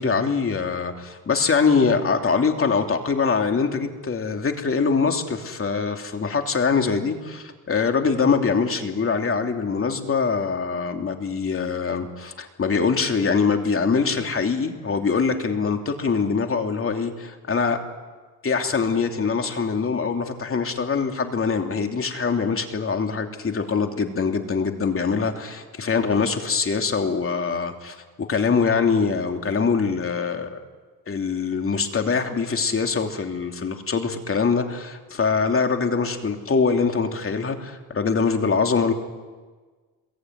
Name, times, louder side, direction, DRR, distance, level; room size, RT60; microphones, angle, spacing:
voice 1, 0.0-17.8 18.4-30.6 31.1-38.9, left 5 dB, 40° left, 4 dB, 2.9 m, -23 dB
27.0 x 22.0 x 9.4 m, 1.4 s
cardioid pair, 100°, 35 cm